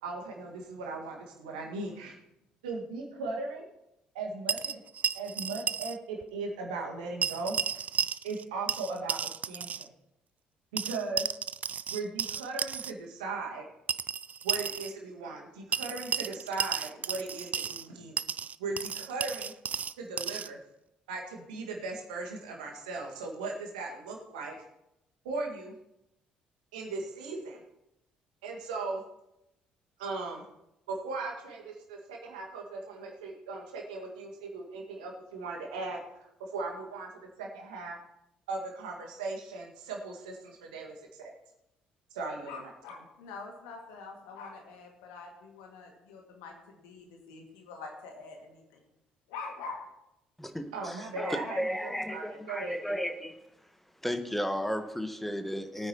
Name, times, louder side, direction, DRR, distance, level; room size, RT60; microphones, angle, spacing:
voice 1, 0.0-2.2 2.6-3.7 4.1-4.8 5.1-7.6 8.2-9.9 10.7-11.3 11.9-13.6 14.4-18.1 18.6-19.5 20.0-20.6 21.1-24.6 25.2-25.7 26.7-27.6 28.4-29.0 30.0-30.4 30.9-37.1 37.4-38.0 38.5-41.3 42.1-42.7 50.7-53.0, right 3 dB, 75° right, 1 dB, 1.9 m, -38 dB
sound 1, 4.5-6.0 6.2-6.3 7.2-8.4 8.7-9.9 10.8-12.9 13.9-14.9 15.7-17.9 18.2-20.5, right 7 dB, 35° right, 0.4 m, -33 dB
voice 2, 42.5-48.9 49.3-49.8, left 4 dB, 65° left, 2 dB, 2.2 m, -45 dB
voice 3, 50.4-53.3 54.0-55.9, equal, 5° left, 8 dB, 1.3 m, -34 dB
20.5 x 9.5 x 3.0 m, 0.87 s
figure-of-eight pair, 50°, 4 cm